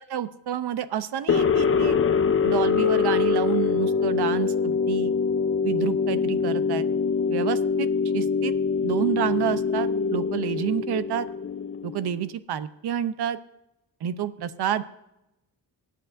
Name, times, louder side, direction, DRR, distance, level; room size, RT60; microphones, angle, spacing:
voice 1, 0.1-2.0 2.4-5.1 5.6-6.9 7.3-7.9 8.1-8.5 8.8-11.3 11.8-13.4 14.0-14.8, right 10 dB, 70° right, 13 dB, 0.8 m, -29 dB
sound 1, 1.3-12.2, left 5 dB, 35° left, 0.6 m, -24 dB
24.5 x 9.5 x 2.6 m, 0.90 s
wide cardioid pair, 170°, 41 cm